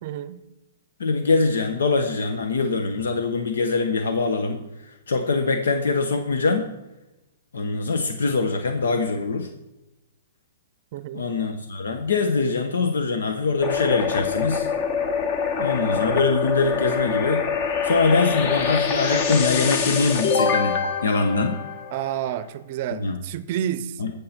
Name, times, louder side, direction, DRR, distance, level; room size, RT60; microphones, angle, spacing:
voice 1, 0.0-0.5 10.9-11.2 21.9-24.0, right 10 dB, 45° right, 15 dB, 0.6 m, -30 dB
voice 2, 1.0-4.6 4.8-6.7 7.5-9.5 11.1-14.7 15.6-17.4 17.8-21.6 22.9-23.2 24.0-24.1, left 4 dB, 90° left, 6 dB, 1.1 m, -23 dB
sound 1, 13.6-22.3, left 6 dB, 40° left, 1.3 m, -25 dB
16.5 x 6.5 x 4.4 m, 0.95 s
hypercardioid pair, 150°, 0 cm